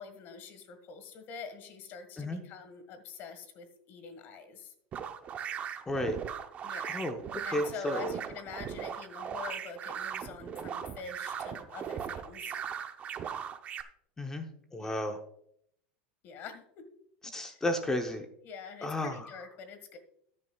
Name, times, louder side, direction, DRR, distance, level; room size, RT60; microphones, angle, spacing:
voice 1, 0.0-4.7 6.6-7.1 7.4-12.5 14.8-15.2 16.2-16.8 17.4-17.6 18.4-20.0, left 5 dB, 40° left, 9 dB, 1.6 m, -45 dB
sound 1, 4.9-13.8, right 8 dB, 25° right, 0.6 m, -38 dB
voice 2, 5.9-6.2 6.9-7.2 7.5-8.1 14.2-14.5 14.7-15.2 17.3-18.3 18.8-19.1, left 1 dB, 10° left, 6 dB, 0.7 m, -32 dB
13.5 x 9.7 x 2.3 m, 0.70 s
supercardioid pair, 160°, 6 cm